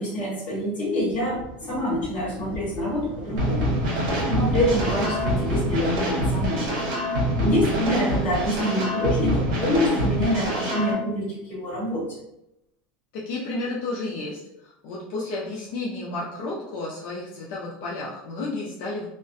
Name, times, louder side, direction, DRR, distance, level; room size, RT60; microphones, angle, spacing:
voice 1, 0.0-3.8 4.3-6.7 7.3-12.2, equal, 25° left, -6 dB, 1.1 m, -26 dB
sound 1, 1.0-9.1 9.5-10.6, right 1 dB, 30° right, 0.5 m, -37 dB
sound 2, 3.4-10.9, equal, 70° right, 0.8 m, -25 dB
voice 2, 13.1-19.1, left 2 dB, 55° left, -5 dB, 0.5 m, -32 dB
2.4 x 2.1 x 2.5 m, 0.83 s
cardioid pair, 170°, 4 cm